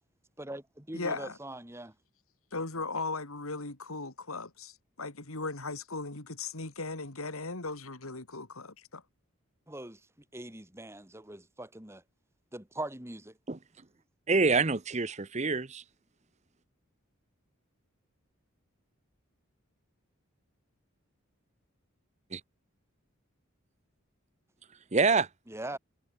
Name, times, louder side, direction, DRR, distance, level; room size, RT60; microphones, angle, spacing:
voice 1, 0.4-1.9 9.7-10.0 10.3-12.0 12.5-13.3 25.5-25.8, right 1 dB, 10° right, 2.1 m, -41 dB
voice 2, 0.9-1.4 2.5-9.0, left 3 dB, 85° left, 3.1 m, -37 dB
voice 3, 14.3-15.8 22.3-22.4 24.9-25.3, right 4 dB, 30° right, 0.8 m, -26 dB
head